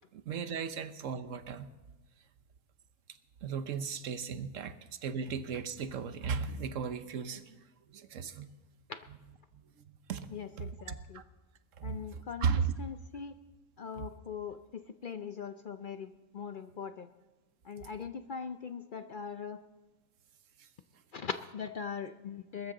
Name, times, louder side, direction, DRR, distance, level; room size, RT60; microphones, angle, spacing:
voice 1, 0.1-1.7 3.4-8.5 9.5-10.3 10.6-11.2 11.8-12.7 13.9-14.1 20.6-20.7, right 6 dB, 60° right, 11 dB, 1.2 m, -36 dB
voice 2, 10.3-11.2 11.8-12.5 12.8-13.4 13.8-17.1 17.6-19.6 21.1-22.7, left 6 dB, 70° left, 9 dB, 0.4 m, -41 dB
21.5 x 13.0 x 3.9 m, 1.2 s
omnidirectional pair, 1.6 m